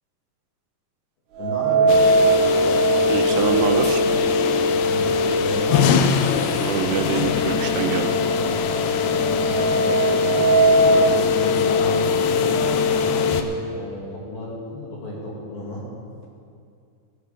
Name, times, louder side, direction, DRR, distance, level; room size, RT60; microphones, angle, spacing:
voice 1, 1.4-2.1 4.9-6.0 9.0-10.0 11.0-15.8, left 1 dB, 70° left, -4 dB, 4.1 m, -34 dB
sound 1, 1.4-5.4 5.8-5.9 6.9-7.0 7.3-11.2, right 4 dB, 70° right, 2.6 m, -22 dB
sound 2, 1.9-13.4, left 5 dB, 90° left, 1.6 m, -21 dB
voice 2, 3.1-4.0 6.6-8.2, right 8 dB, 85° right, 5 dB, 2.4 m, -25 dB
16.0 x 6.7 x 6.8 m, 2.4 s
omnidirectional pair, 4.2 m